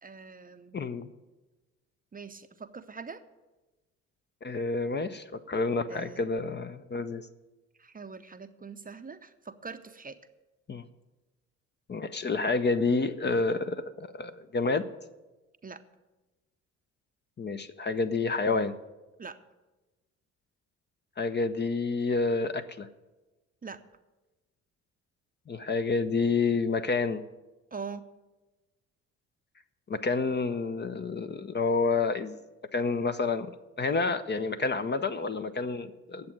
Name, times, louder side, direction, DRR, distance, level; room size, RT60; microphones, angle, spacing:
voice 1, 0.0-0.8 2.1-3.2 5.9-6.3 7.8-10.2 15.6-15.8 19.2-19.4 23.6-23.8 27.7-28.0, right 5 dB, 20° right, 10 dB, 0.7 m, -43 dB
voice 2, 0.7-1.1 4.4-7.3 10.7-10.9 11.9-14.9 17.4-18.7 21.2-22.9 25.5-27.2 29.9-32.4 32.7-33.5 33.8-36.3, left 4 dB, 25° left, 9 dB, 0.7 m, -29 dB
9.6 x 7.7 x 9.1 m, 1.1 s
hypercardioid pair, 50°, 40 cm